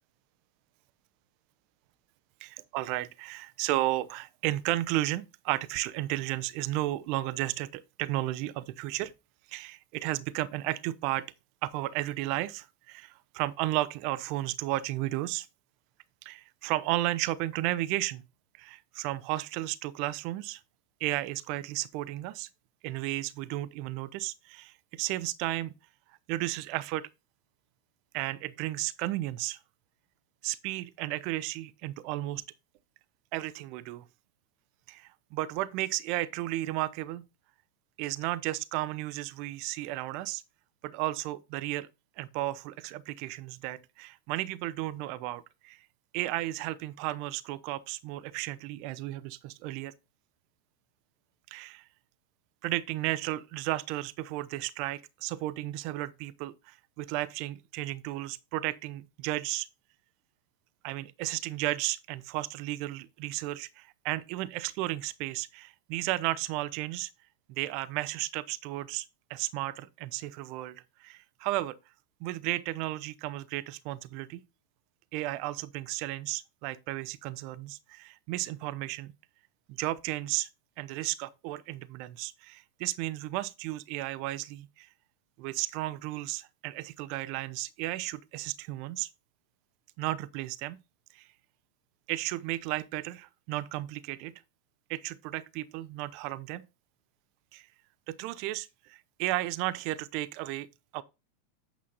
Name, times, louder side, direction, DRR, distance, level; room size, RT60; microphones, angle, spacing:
voice 1, 2.4-9.1 9.5-11.3 11.6-15.5 16.2-18.2 18.5-20.6 21.0-22.5 22.8-25.7 26.3-27.1 28.1-29.6 30.4-32.4 33.3-34.1 34.9-37.2 38.0-40.4 40.8-41.9 42.2-45.9 46.1-49.9 51.5-51.9 52.6-59.7 60.8-67.1 67.5-71.8 72.2-74.4 75.1-79.1 79.7-80.5 80.8-84.9 85.4-89.1 90.0-90.8 91.1-91.3 92.1-94.4 94.9-96.6 97.5-97.7 98.1-100.7 100.9-101.0, right 16 dB, 45° right, 0.5 m, -33 dB
8.7 x 7.0 x 2.6 m
figure-of-eight pair, 90°, 0 cm